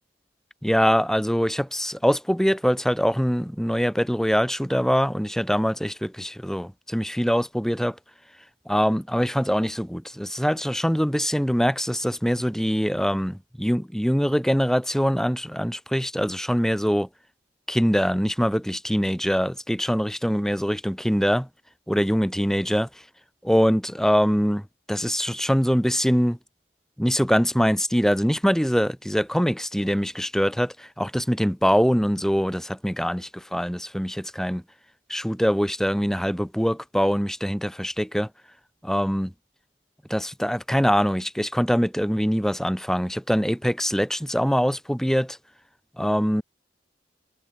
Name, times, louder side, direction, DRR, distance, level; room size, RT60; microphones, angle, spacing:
voice 1, 0.6-8.0 8.7-17.1 17.7-21.5 21.9-22.9 23.4-26.4 27.0-34.6 35.1-38.3 38.8-39.3 40.1-45.4 46.0-46.4, equal, 5° left, 3.7 m, -23 dB
head